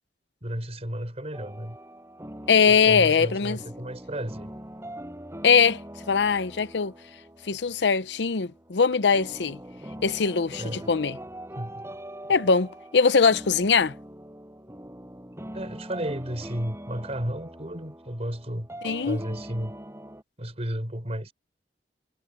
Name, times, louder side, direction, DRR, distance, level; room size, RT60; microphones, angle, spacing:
voice 1, 0.4-1.8 2.7-4.5 10.6-10.9 11.5-11.8 15.5-18.7 19.1-19.7 20.4-21.3, equal, 35° right, 4.8 m, -33 dB
sound 1, 1.3-20.2, right 1 dB, 15° right, 6.4 m, -42 dB
voice 2, 2.5-3.6 5.4-5.8 6.1-6.9 7.4-9.6 10.0-11.2 12.3-13.9 18.8-19.2, left 5 dB, 75° left, 0.7 m, -21 dB
head